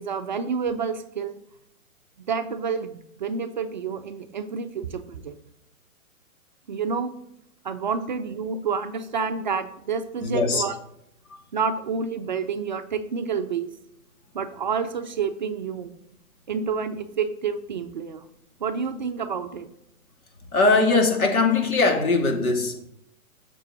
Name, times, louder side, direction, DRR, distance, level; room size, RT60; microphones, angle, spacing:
voice 1, 0.0-1.4 2.2-5.4 6.7-7.1 7.6-10.7 11.5-13.7 14.3-15.9 16.5-18.2 18.6-19.7, right 6 dB, 35° right, 8 dB, 0.4 m, -29 dB
voice 2, 10.2-10.6 11.3-11.4 20.5-22.8, left 3 dB, 80° left, 3 dB, 2.5 m, -21 dB
7.1 x 6.1 x 6.2 m, 0.78 s
hypercardioid pair, 150°, 42 cm